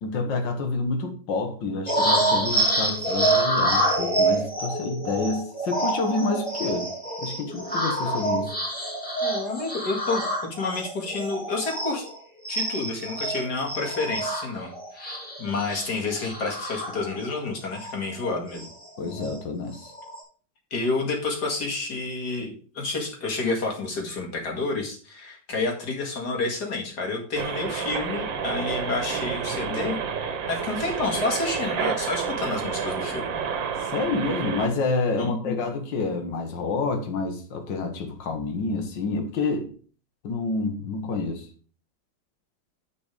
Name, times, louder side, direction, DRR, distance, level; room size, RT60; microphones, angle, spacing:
voice 1, 0.0-6.9 7.2-8.6 19.0-19.9 33.8-39.7 40.2-41.5, left 3 dB, 80° left, 2.0 m, -28 dB
sound 1, 1.9-12.2 12.4-17.3 17.7-17.9 18.2-19.4 19.7-20.2, right 1 dB, 5° left, 3.4 m, -27 dB
voice 2, 9.2-10.2 10.6-12.1 12.5-18.7 20.7-30.0 30.5-33.3 35.2-35.5, left 3 dB, 60° left, 2.7 m, -29 dB
Background Noise At The Mall, 27.4-34.7, right 6 dB, 85° right, 1.9 m, -30 dB
10.0 x 5.3 x 4.9 m
omnidirectional pair, 2.0 m